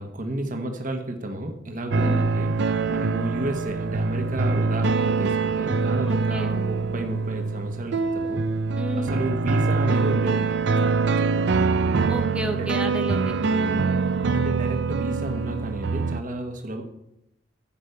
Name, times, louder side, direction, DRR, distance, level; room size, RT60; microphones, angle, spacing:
voice 1, 0.0-2.5 2.9-8.4 8.9-11.7 12.4-12.7 14.3-16.8, right 1 dB, 45° right, 4 dB, 1.2 m, -32 dB
sound 1, 1.9-16.2, right 4 dB, 65° right, 0.5 m, -24 dB
voice 2, 2.0-2.4 6.1-6.5 8.8-9.2 12.1-13.9, right 1 dB, 5° right, 6 dB, 0.5 m, -31 dB
11.5 x 5.3 x 8.2 m, 0.82 s
head